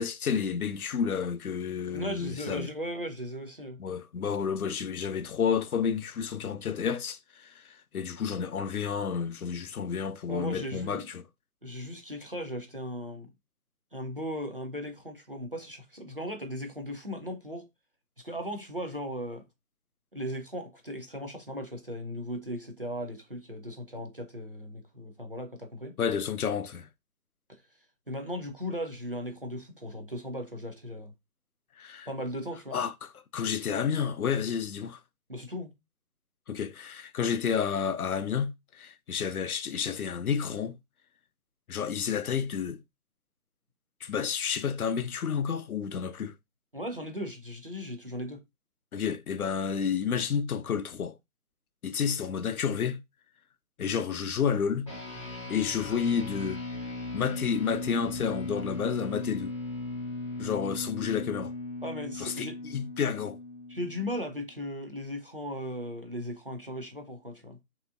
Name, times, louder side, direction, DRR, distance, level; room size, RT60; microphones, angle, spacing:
voice 1, 0.0-2.7 3.8-11.2 26.0-26.9 31.8-32.1 32.7-35.0 36.5-40.8 41.7-42.8 44.0-46.3 48.9-51.2 51.8-53.0 53.8-54.9 55.5-56.6 57.1-59.5 60.4-61.5 62.2-63.4, left 7 dB, 70° left, 0.5 m, -30 dB
voice 2, 1.9-3.8 10.3-11.1 11.6-13.3 13.9-17.7 18.2-19.4 20.1-26.0 28.1-31.1 32.1-32.8 35.3-35.7 46.7-48.4 61.8-62.6 63.7-67.6, equal, 40° right, 0.4 m, -37 dB
sound 1, 54.9-64.5, left 2 dB, 20° left, 0.7 m, -37 dB
2.8 x 2.8 x 2.4 m
figure-of-eight pair, 150°, 45 cm